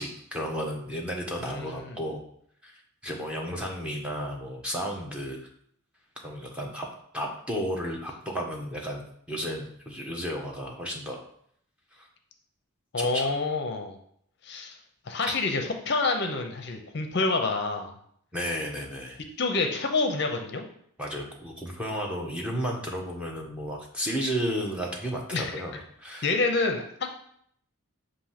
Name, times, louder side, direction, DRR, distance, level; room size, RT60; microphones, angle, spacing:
voice 1, 0.0-2.2 2.6-2.7 3.0-5.4 6.2-6.9 7.1-11.2 11.9-12.1 13.0-13.3 15.3-15.4 18.3-19.2 21.0-26.3, equal, 5° right, -2 dB, 1.0 m, -33 dB
voice 2, 1.4-2.0 12.9-14.0 14.4-14.8 15.1-18.0 19.4-20.6 25.3-25.5 26.2-27.1, left 3 dB, 50° left, 4 dB, 0.6 m, -28 dB
6.8 x 2.7 x 5.7 m, 0.67 s
head